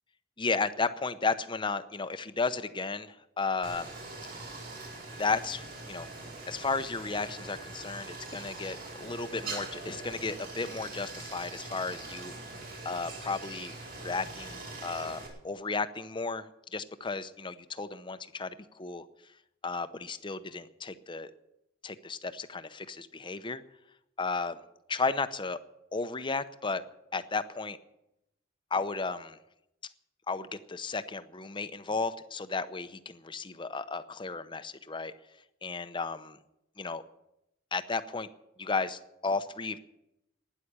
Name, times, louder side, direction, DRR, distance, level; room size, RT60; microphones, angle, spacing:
voice 1, 0.4-3.9 5.1-6.1 6.5-12.3 12.8-13.7 14.0-19.1 19.6-21.3 21.8-23.6 24.2-24.6 24.9-25.6 25.9-26.8 27.1-27.8 28.7-29.4 30.3-35.1 35.6-36.3 36.8-37.0 37.7-38.3 38.6-39.8, left 4 dB, 25° left, 12 dB, 0.7 m, -34 dB
Stream, 3.6-15.3, right 3 dB, 50° right, 4.8 m, -43 dB
12.5 x 10.0 x 10.0 m, 0.88 s
head